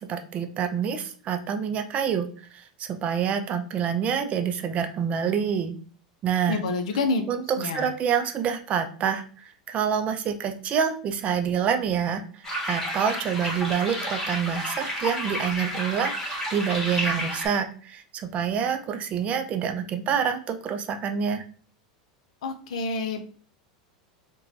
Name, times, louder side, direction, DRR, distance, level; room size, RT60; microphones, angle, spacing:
voice 1, 0.1-5.7 6.2-6.6 7.3-21.4, right 7 dB, 35° right, 6 dB, 0.4 m, -27 dB
voice 2, 6.5-7.2 7.6-7.9 22.4-23.2, left 3 dB, 75° left, 7 dB, 0.4 m, -27 dB
sound 1, 12.4-17.5, equal, 15° left, 1.2 m, -31 dB
3.0 x 2.2 x 2.5 m, 0.42 s
hypercardioid pair, 95°, 4 cm